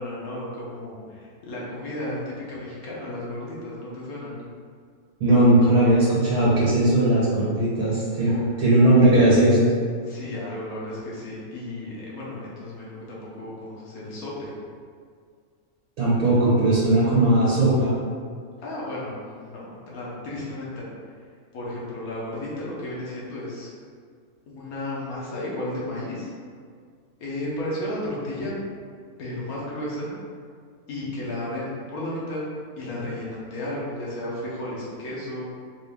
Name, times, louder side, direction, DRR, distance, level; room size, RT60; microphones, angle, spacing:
voice 1, 0.0-4.4 8.3-8.4 10.0-14.5 17.1-17.3 18.6-20.9 21.5-23.7 24.5-26.3 27.2-28.5 29.2-30.1 30.9-32.5 32.8-35.4, left 1 dB, 75° left, -6 dB, 1.5 m, -33 dB
voice 2, 5.2-9.6 16.0-17.9, right 1 dB, 80° right, -8 dB, 1.6 m, -18 dB
4.6 x 2.7 x 3.5 m, 2.1 s
omnidirectional pair, 1.6 m